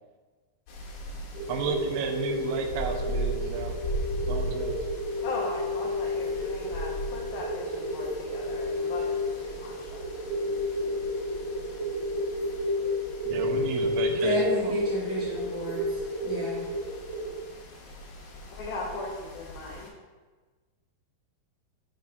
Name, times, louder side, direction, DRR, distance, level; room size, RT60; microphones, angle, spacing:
sound 1, 0.7-19.9, right 1 dB, 70° left, 2.6 m, -39 dB
sound 2, 1.3-17.4, left 1 dB, 55° right, 1.3 m, -31 dB
voice 1, 1.5-3.8 4.3-4.8 13.3-14.8, right 6 dB, 80° right, 5 dB, 2.8 m, -33 dB
voice 2, 5.2-10.0 18.5-19.9, left 3 dB, 90° left, -3 dB, 2.0 m, -38 dB
voice 3, 14.2-16.6, equal, 55° left, -9 dB, 1.0 m, -33 dB
8.1 x 5.0 x 3.4 m, 1.3 s
omnidirectional pair, 5.3 m